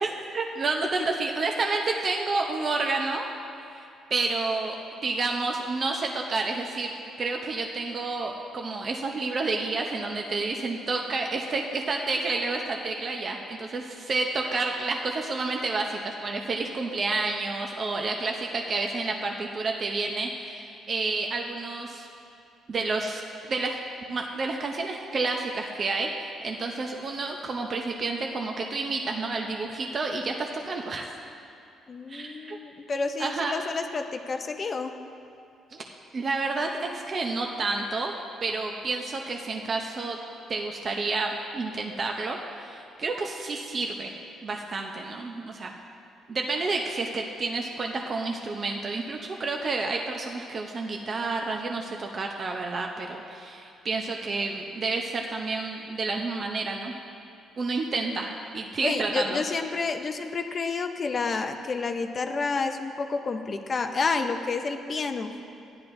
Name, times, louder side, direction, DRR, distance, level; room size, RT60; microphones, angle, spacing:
voice 1, 0.0-3.3 3.7-4.8 5.0-22.1 22.7-23.2 23.5-23.8 24.1-31.1 32.1-32.6 33.2-33.6 36.1-38.1 38.4-40.2 40.5-44.1 44.4-45.7 46.3-56.9 57.6-59.4, right 3 dB, 40° right, 1 dB, 0.6 m, -30 dB
voice 2, 31.9-34.9 58.8-65.3, left 4 dB, 35° left, 6 dB, 0.6 m, -29 dB
14.5 x 10.5 x 2.6 m, 2.6 s
cardioid pair, 125°, 0 cm